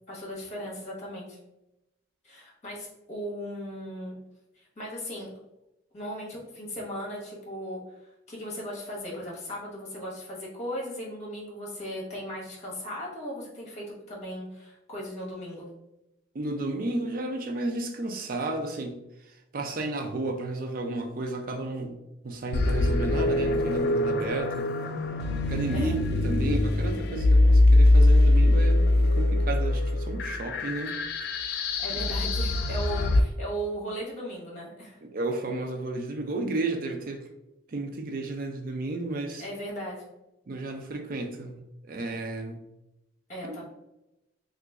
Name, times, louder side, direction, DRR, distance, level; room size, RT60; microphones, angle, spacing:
voice 1, 0.1-1.4 2.2-4.1 4.5-5.3 5.9-15.7 25.7-26.0 31.5-35.0 39.4-40.1 43.3-43.6, equal, 35° left, -4 dB, 1.1 m, -37 dB
voice 2, 16.3-18.9 19.5-22.0 22.2-24.7 25.5-31.0 31.9-32.0 35.0-37.3 37.7-39.4 40.5-42.6 43.5-43.6, right 2 dB, 45° right, 4 dB, 0.4 m, -32 dB
sound 1, 22.5-33.2, left 2 dB, 55° left, 0.3 m, -22 dB
2.9 x 2.5 x 3.6 m, 0.91 s
head